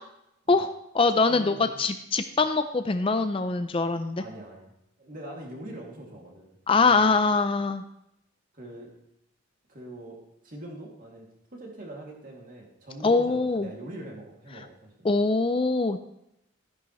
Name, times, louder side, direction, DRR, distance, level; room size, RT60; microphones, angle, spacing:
voice 1, 0.5-4.2 6.7-7.8 13.0-13.7 15.0-16.0, left 3 dB, 25° left, 9 dB, 0.4 m, -23 dB
voice 2, 1.3-1.8 4.2-4.7 5.0-7.2 8.5-8.9 9.7-11.3 11.5-15.1, right 1 dB, 40° right, -1 dB, 2.4 m, -43 dB
13.0 x 10.5 x 3.1 m, 0.80 s
head